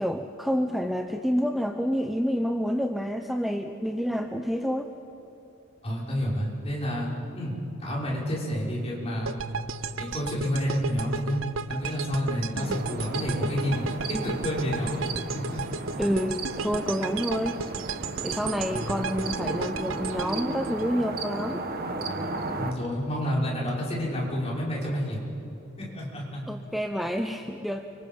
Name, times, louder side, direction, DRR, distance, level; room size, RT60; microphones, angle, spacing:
voice 1, 0.0-4.9 12.5-12.8 16.0-17.6 18.2-21.6 26.5-27.9, equal, ahead, 5 dB, 0.7 m, -28 dB
voice 2, 5.8-7.5 7.8-9.3 10.0-15.0 15.3-15.6 18.7-19.1 22.5-25.2 25.8-26.4, equal, 30° left, -5 dB, 5.9 m, -29 dB
sound 1, 9.2-21.4, right 5 dB, 65° right, 0.8 m, -35 dB
sound 2, 12.6-22.7, right 2 dB, 45° right, 1.5 m, -34 dB
30.0 x 25.5 x 5.5 m, 3.0 s
head